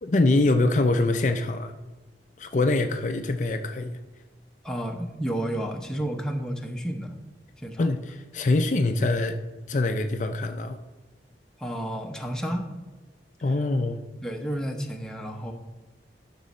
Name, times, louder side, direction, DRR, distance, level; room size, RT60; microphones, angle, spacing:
voice 1, 0.0-1.7 2.4-4.0 7.8-9.4 9.7-10.8 13.4-14.0, left 2 dB, 45° left, 6 dB, 0.5 m, -24 dB
voice 2, 4.6-7.1 7.6-7.9 11.6-12.6 14.2-15.5, right 1 dB, 5° left, 2 dB, 0.8 m, -31 dB
11.5 x 6.2 x 4.2 m, 1.1 s
head